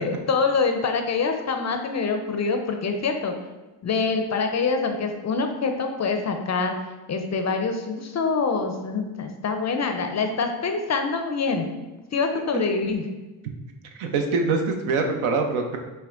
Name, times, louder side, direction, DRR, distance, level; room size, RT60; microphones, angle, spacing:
voice 1, 0.0-3.3 3.8-6.8 7.1-11.7 12.1-13.0, left 4 dB, 35° left, 5 dB, 0.4 m, -25 dB
voice 2, 14.0-15.8, right 4 dB, 80° right, 4 dB, 0.7 m, -24 dB
5.6 x 2.2 x 2.4 m, 1.1 s
supercardioid pair, 55°, 49 cm